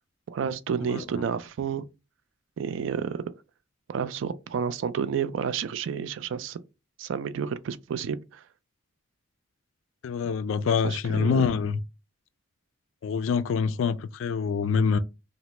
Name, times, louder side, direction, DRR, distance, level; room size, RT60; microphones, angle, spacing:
voice 1, 0.3-1.8 2.6-3.3 3.9-6.6 7.0-8.4 10.8-11.6, right 7 dB, 70° right, 0.3 m, -30 dB
voice 2, 10.0-11.8 13.0-15.0, left 6 dB, 75° left, 0.3 m, -25 dB
3.2 x 2.0 x 2.9 m
head